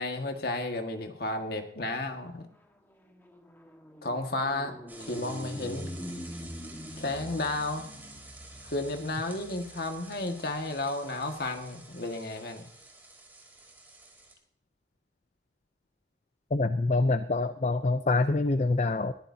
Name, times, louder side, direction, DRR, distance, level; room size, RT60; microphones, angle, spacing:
voice 1, 0.0-2.5 4.0-4.7 5.0-6.0 7.0-7.9 8.6-12.6, left 2 dB, 55° left, 5 dB, 1.8 m, -32 dB
sound 1, 2.2-11.7, equal, 10° left, 1.6 m, -45 dB
sound 2, 4.9-14.3, right 2 dB, 10° right, 3.3 m, -50 dB
voice 2, 16.5-19.1, left 3 dB, 40° left, 10 dB, 0.5 m, -26 dB
20.5 x 14.5 x 2.8 m, 0.69 s
head